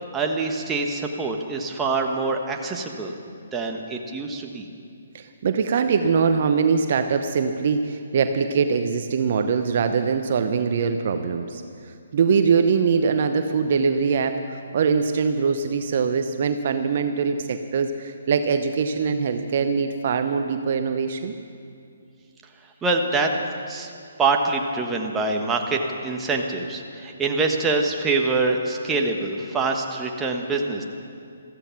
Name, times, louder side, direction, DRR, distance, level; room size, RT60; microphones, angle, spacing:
voice 1, 0.1-3.1 3.5-4.7 22.8-23.3 23.7-23.9 24.2-30.8, right 3 dB, 15° right, 2 dB, 1.3 m, -25 dB
voice 2, 5.1-11.6 12.1-21.3, right 5 dB, 50° right, 8 dB, 0.7 m, -22 dB
15.0 x 14.0 x 5.9 m, 2.4 s
hypercardioid pair, 145°, 0 cm